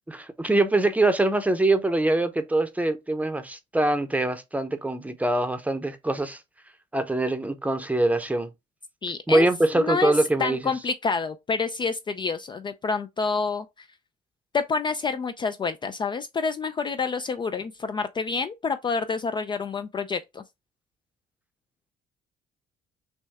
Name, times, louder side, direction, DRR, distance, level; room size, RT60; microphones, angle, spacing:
voice 1, 0.1-6.4 6.9-8.5 9.3-10.6, right 2 dB, 10° right, 0.7 m, -23 dB
voice 2, 9.0-9.5 9.7-10.1 10.4-13.9 14.5-20.4, left 4 dB, 25° left, 0.4 m, -28 dB
6.2 x 2.2 x 3.4 m
cardioid pair, 110°, 17 cm